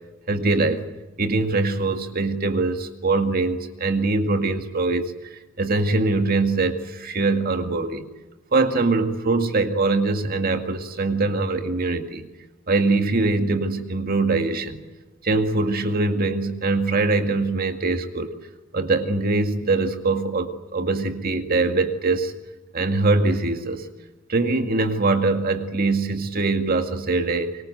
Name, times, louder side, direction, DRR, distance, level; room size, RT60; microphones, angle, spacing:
voice 1, 0.3-0.8 1.2-8.0 8.5-12.3 12.7-14.8 15.2-18.3 18.7-22.3 22.7-23.9 24.3-27.6, right 3 dB, 45° right, 6 dB, 2.2 m, -23 dB
24.5 x 24.0 x 8.0 m, 1.1 s
head